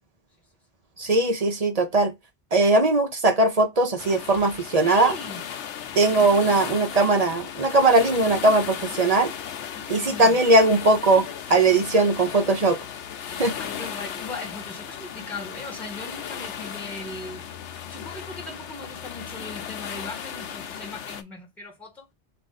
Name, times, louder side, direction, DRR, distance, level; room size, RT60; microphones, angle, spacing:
voice 1, 1.0-2.1 2.5-5.1 6.0-9.3 9.9-12.8 13.4-13.6, right 2 dB, 40° right, 0.6 m, -20 dB
sound 1, 4.0-21.2, left 8 dB, 85° left, 0.9 m, -36 dB
voice 2, 4.8-5.4 9.7-10.4 13.6-17.6 17.9-22.0, left 2 dB, ahead, 1.8 m, -38 dB
3.7 x 2.6 x 4.0 m
omnidirectional pair, 1.2 m